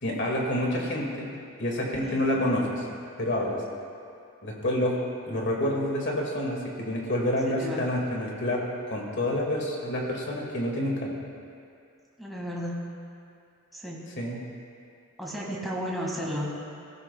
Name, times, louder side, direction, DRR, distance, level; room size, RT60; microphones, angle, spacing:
voice 1, 0.0-1.3 1.6-2.9 3.2-3.6 4.4-5.0 5.2-11.1 14.2-14.4, left 1 dB, 50° left, -1 dB, 2.0 m, -28 dB
voice 2, 7.6-7.9 12.2-12.9 13.7-14.0 15.2-16.6, equal, ahead, -4 dB, 1.8 m, -33 dB
16.0 x 15.0 x 2.3 m, 2.4 s
head